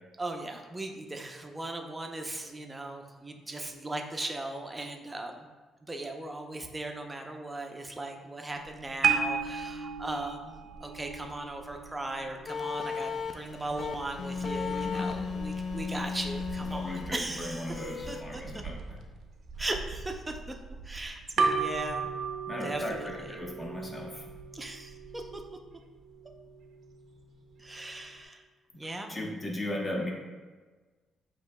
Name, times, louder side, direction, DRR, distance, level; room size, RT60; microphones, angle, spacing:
voice 1, 0.2-5.5 5.8-10.6 10.8-18.6 19.6-20.6 20.8-22.1 22.6-23.4 24.5-25.4 27.6-28.4 28.8-29.1, right 2 dB, 20° right, 3 dB, 0.6 m, -38 dB
sound 1, 8.6-28.2, right 5 dB, 60° right, 0.5 m, -36 dB
sound 2, 12.5-18.2, left 5 dB, 45° left, 0.5 m, -35 dB
voice 2, 14.7-15.1 16.7-19.0 22.5-24.2 29.1-30.1, left 1 dB, 20° left, -2 dB, 1.1 m, -37 dB
8.2 x 3.0 x 2.2 m, 1.3 s
cardioid pair, 90°, 0 cm